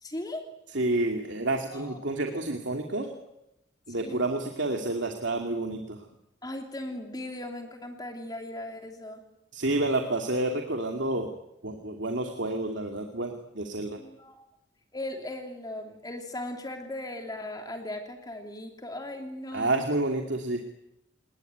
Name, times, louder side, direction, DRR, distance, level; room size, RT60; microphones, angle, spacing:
voice 1, 0.0-0.5 1.7-2.0 3.0-3.3 4.0-4.2 6.4-9.2 14.0-14.5 14.9-19.8, left 1 dB, 20° left, 4 dB, 3.0 m, -38 dB
voice 2, 0.7-3.1 3.9-6.0 9.5-11.3 11.6-14.0 19.5-20.6, right 2 dB, 75° right, 4 dB, 2.6 m, -29 dB
29.0 x 20.0 x 9.3 m, 0.86 s
head